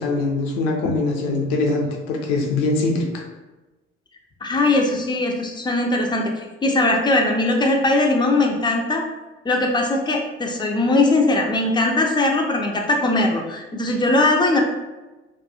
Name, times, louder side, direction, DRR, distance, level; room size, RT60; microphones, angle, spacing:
voice 1, 0.0-3.2, left 3 dB, 65° left, 2 dB, 0.5 m, -22 dB
voice 2, 4.4-9.0 9.4-14.6, left 2 dB, 15° left, 1 dB, 0.3 m, -20 dB
2.3 x 2.2 x 2.7 m, 1.1 s
figure-of-eight pair, 45°, 35 cm